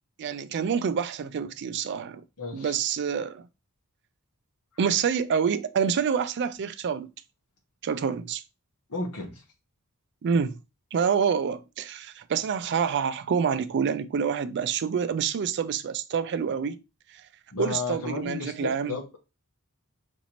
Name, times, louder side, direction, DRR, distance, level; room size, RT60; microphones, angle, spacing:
voice 1, 0.2-2.2 2.5-3.5 4.8-7.1 7.8-8.4 10.2-10.6 10.9-16.8 17.1-17.2 17.6-19.0, right 6 dB, 50° right, 0.4 m, -27 dB
voice 2, 2.4-2.8 4.7-4.9 8.9-9.4 17.5-19.2, left 3 dB, 80° left, 1.0 m, -34 dB
5.0 x 2.7 x 2.9 m
head